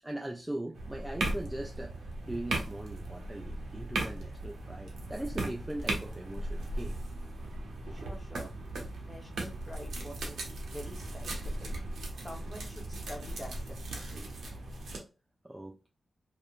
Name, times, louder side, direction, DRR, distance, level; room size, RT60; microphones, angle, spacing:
voice 1, 0.0-7.0 15.4-15.9, right 1 dB, 15° right, 0.4 m, -40 dB
sound 1, 0.7-15.0, right 2 dB, 85° right, 0.7 m, -37 dB
voice 2, 7.9-8.6 9.0-11.7 12.2-14.3, equal, 10° left, 1.1 m, -47 dB
2.7 x 2.1 x 2.5 m
cardioid pair, 60°, 0 cm